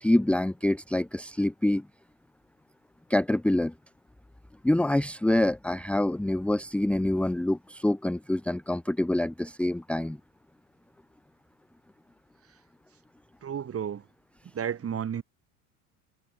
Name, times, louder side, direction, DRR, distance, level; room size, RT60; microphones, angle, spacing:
voice 1, 0.0-1.8 3.1-3.7 4.6-10.2, left 1 dB, 5° left, 1.0 m, -26 dB
voice 2, 13.4-14.1 14.5-15.2, right 8 dB, 35° right, 5.9 m, -32 dB
hypercardioid pair, 95°, 42 cm